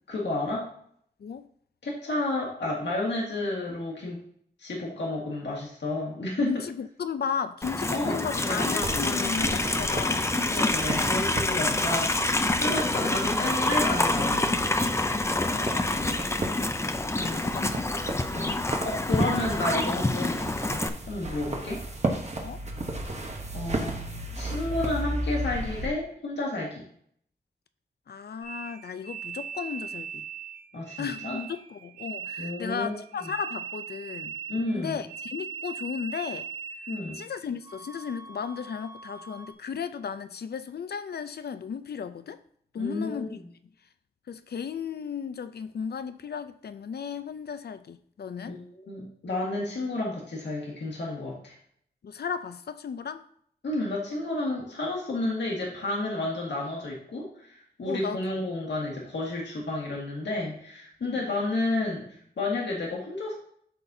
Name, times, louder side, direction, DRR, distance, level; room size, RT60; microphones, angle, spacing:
voice 1, 0.1-0.7 1.8-4.2 4.6-6.5 7.9-8.6 10.5-14.7 17.1-17.6 18.3-18.6 18.8-20.8 21.1-21.8 23.1-23.3 23.5-24.0 24.3-26.9 30.7-31.5 32.4-33.3 34.5-35.0 36.9-37.3 42.8-43.3 48.4-51.5 53.6-62.1 62.4-63.4, left 2 dB, 90° left, 1.8 m, -31 dB
voice 2, 6.4-10.3 15.2-16.7 17.2-17.9 22.3-22.6 28.1-30.2 31.0-34.4 34.7-36.5 37.1-42.4 42.7-43.4 44.3-48.6 52.0-53.3 57.9-58.2 61.0-61.3, left 6 dB, 65° left, 0.5 m, -35 dB
Livestock farm animals working animals, 7.6-20.9, left 2 dB, 15° left, 0.5 m, -27 dB
sound 1, 8.8-25.9, right 1 dB, 40° right, 1.1 m, -35 dB
sound 2, 28.4-37.3 37.6-39.5, right 7 dB, 60° right, 1.8 m, -40 dB
12.0 x 4.1 x 2.7 m
wide cardioid pair, 130°, 18 cm